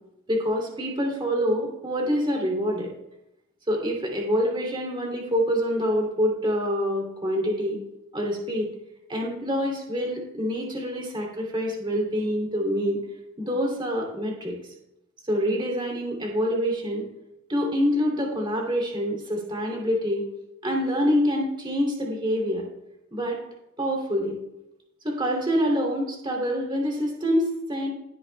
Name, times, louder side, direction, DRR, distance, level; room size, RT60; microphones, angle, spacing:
voice 1, 0.3-2.9 3.7-7.8 8.1-8.7 9.1-13.0 13.4-14.6 15.3-17.1 17.5-20.2 20.6-22.7 23.1-23.4 23.8-24.4 25.0-27.9, equal, 25° right, -1 dB, 2.6 m, -26 dB
16.5 x 8.3 x 2.2 m, 0.90 s
head